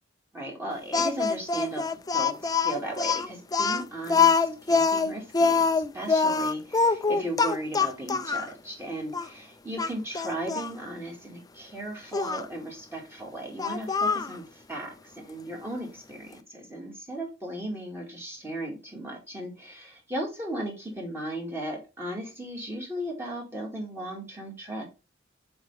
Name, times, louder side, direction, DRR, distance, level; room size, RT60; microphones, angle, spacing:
voice 1, 0.3-1.9 2.1-24.8, right 1 dB, 15° right, -1 dB, 2.1 m, -36 dB
Speech, 0.9-8.5 9.1-9.3 9.8-10.7 12.1-12.4 13.6-14.4, left 5 dB, 20° left, 0.4 m, -24 dB
7.2 x 4.3 x 3.3 m, 0.29 s
head